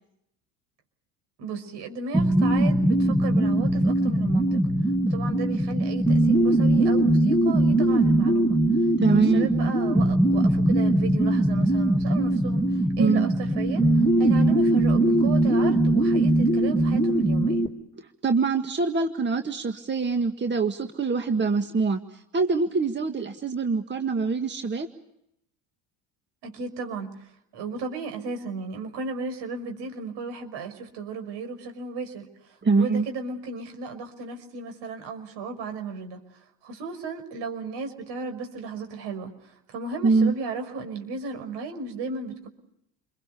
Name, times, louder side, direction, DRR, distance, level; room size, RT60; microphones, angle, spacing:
voice 1, 1.4-4.7 5.0-8.6 9.1-17.7 26.4-27.3 27.5-42.5, right 4 dB, 65° right, 6 dB, 5.9 m, -35 dB
sound 1, 2.1-17.7, right 1 dB, 10° left, 2.8 m, -21 dB
voice 2, 9.0-9.5 13.0-13.3 18.0-24.9 32.6-33.1 40.0-40.3, right 4 dB, 25° right, 7 dB, 1.8 m, -24 dB
29.5 x 23.0 x 6.9 m, 0.77 s
supercardioid pair, 80°, 45 cm